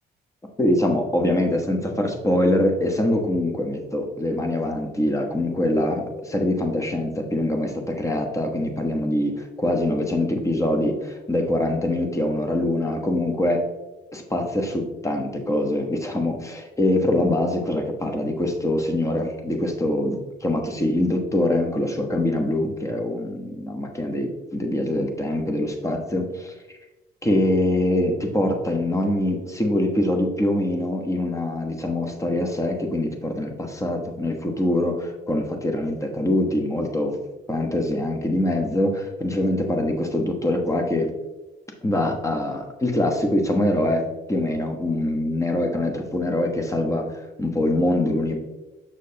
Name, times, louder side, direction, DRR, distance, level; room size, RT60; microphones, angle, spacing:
voice 1, 0.6-13.6 14.1-26.5 27.2-37.2 37.5-41.1 41.8-48.4, left 1 dB, 15° left, 3 dB, 1.1 m, -24 dB
6.4 x 6.2 x 2.8 m, 1.1 s
cardioid pair, 90°, 20 cm